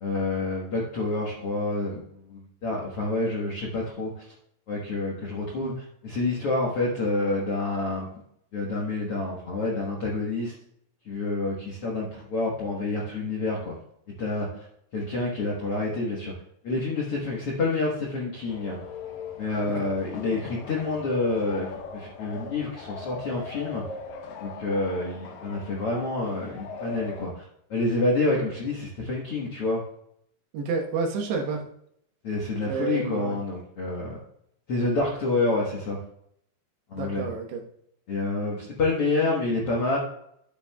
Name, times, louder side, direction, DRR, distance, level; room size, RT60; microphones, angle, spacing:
voice 1, 0.0-4.2 4.7-8.1 8.5-10.5 11.0-13.7 14.2-14.6 14.9-16.3 16.6-18.8 19.4-23.8 24.4-27.4 27.7-29.8 32.2-34.2 34.7-36.0 36.9-37.3 38.1-40.0, left 2 dB, 75° left, -3 dB, 1.3 m, -28 dB
sound 1, 18.5-27.3, left 5 dB, 90° left, 1.6 m, -40 dB
voice 2, 30.5-31.6 32.7-33.4 37.0-37.6, right 4 dB, 80° right, 2 dB, 3.4 m, -30 dB
12.0 x 8.6 x 2.3 m, 0.72 s
omnidirectional pair, 4.7 m